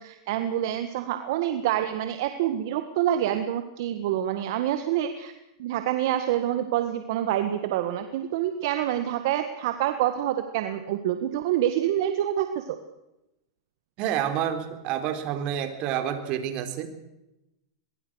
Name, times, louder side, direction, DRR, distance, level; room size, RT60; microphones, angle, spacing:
voice 1, 0.0-5.3 5.6-12.6, right 11 dB, 65° right, 8 dB, 1.8 m, -27 dB
voice 2, 14.0-16.9, right 10 dB, 50° right, 8 dB, 4.0 m, -28 dB
23.0 x 22.5 x 6.5 m, 0.92 s
hypercardioid pair, 120°, 2 cm